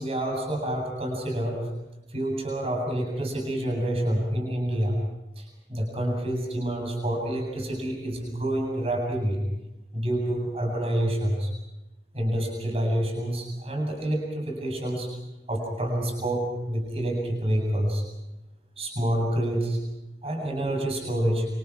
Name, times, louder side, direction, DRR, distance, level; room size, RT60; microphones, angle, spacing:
voice 1, 0.0-1.7 2.1-5.0 5.4-9.4 9.9-11.5 12.1-15.2 15.5-18.0 18.8-19.8 20.2-21.5, right 1 dB, 35° right, 1 dB, 7.9 m, -28 dB
29.0 x 28.0 x 4.9 m, 0.97 s
head